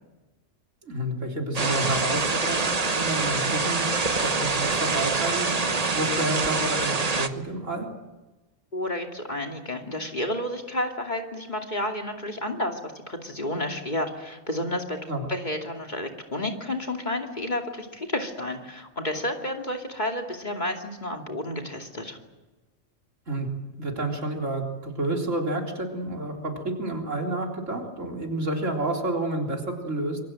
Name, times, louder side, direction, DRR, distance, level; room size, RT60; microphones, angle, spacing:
voice 1, 0.9-3.9 4.2-5.6 5.9-7.9 15.1-15.3 23.3-23.5 23.8-30.2, right 1 dB, 85° right, 1 dB, 4.0 m, -30 dB
sound 1, 1.5-7.3, right 3 dB, 35° right, 1.2 m, -25 dB
voice 2, 8.7-12.8 13.1-15.0 15.3-22.2, left 1 dB, 40° left, 3 dB, 2.7 m, -31 dB
27.0 x 23.0 x 7.7 m, 1.2 s
omnidirectional pair, 1.3 m